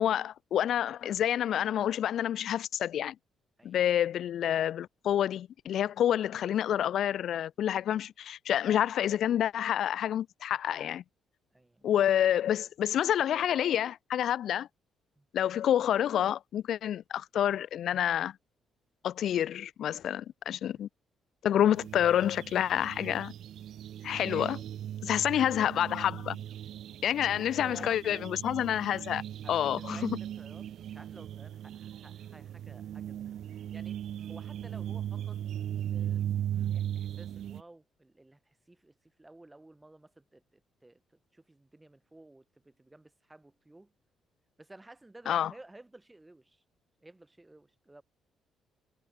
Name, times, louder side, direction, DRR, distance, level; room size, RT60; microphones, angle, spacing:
voice 1, 0.0-3.1 3.6-11.0 11.8-14.7 15.3-18.3 19.0-20.9 21.4-23.3 24.0-24.6 25.0-26.4 27.0-29.2 29.5-30.0 45.3-45.5, left 10 dB, 70° left, 0.3 m, -28 dB
voice 2, 11.5-11.9 15.2-15.3 20.7-20.9 25.1-25.4 27.4-28.1 29.4-34.0 34.3-36.2 36.5-41.0 41.3-43.9 44.6-46.6 47.0-48.0, right 2 dB, 15° right, 4.6 m, -54 dB
sound 1, 21.8-37.6, right 11 dB, 70° right, 1.4 m, -38 dB
cardioid pair, 90°, 0 cm